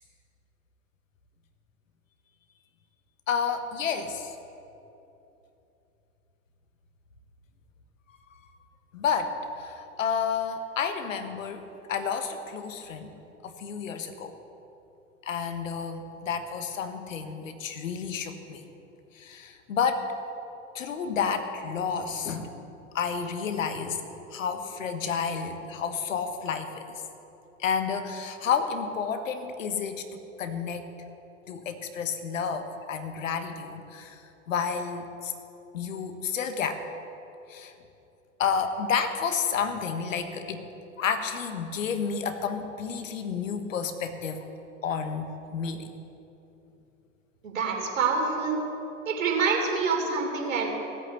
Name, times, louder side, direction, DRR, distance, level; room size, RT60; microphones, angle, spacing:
voice 1, 3.3-4.4 8.1-8.4 8.9-13.1 13.4-14.3 15.2-18.6 19.1-20.1 20.7-22.6 22.9-24.0 24.3-27.0 27.6-30.9 31.5-35.3 35.7-36.8 37.5-37.7 38.4-40.7 41.0-44.4 44.8-45.9, left 6 dB, 85° left, 8 dB, 1.4 m, -30 dB
voice 2, 47.4-48.6 49.1-50.7, right 5 dB, 80° right, 1 dB, 3.3 m, -26 dB
17.0 x 8.5 x 8.2 m, 3.0 s
hypercardioid pair, 90°, 38 cm